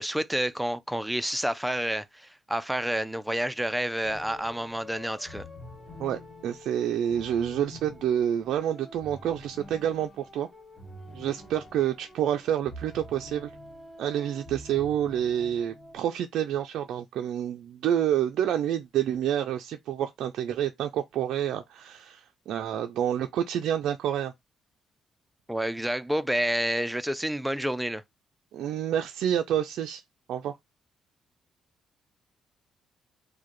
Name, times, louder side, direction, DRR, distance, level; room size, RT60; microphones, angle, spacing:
voice 1, 0.0-5.5 25.5-28.0, right 1 dB, 5° right, 0.4 m, -29 dB
sound 1, 4.0-16.0, equal, 15° left, 1.9 m, -46 dB
voice 2, 6.0-10.5 11.1-13.5 14.0-24.3 28.5-30.0 30.3-30.5, right 10 dB, 80° right, 0.3 m, -28 dB
4.6 x 2.2 x 3.0 m
cardioid pair, 90°, 0 cm